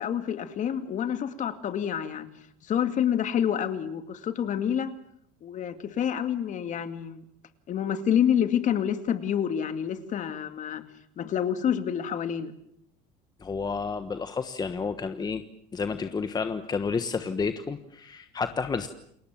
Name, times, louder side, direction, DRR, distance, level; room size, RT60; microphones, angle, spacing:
voice 1, 0.0-2.3 2.6-4.9 5.4-7.2 7.7-10.8 11.2-12.5, left 9 dB, 40° left, 10 dB, 2.3 m, -28 dB
voice 2, 13.4-15.4 15.7-18.9, left 5 dB, 20° left, 9 dB, 1.3 m, -30 dB
29.5 x 21.0 x 7.5 m, 0.71 s
supercardioid pair, 120°, 19 cm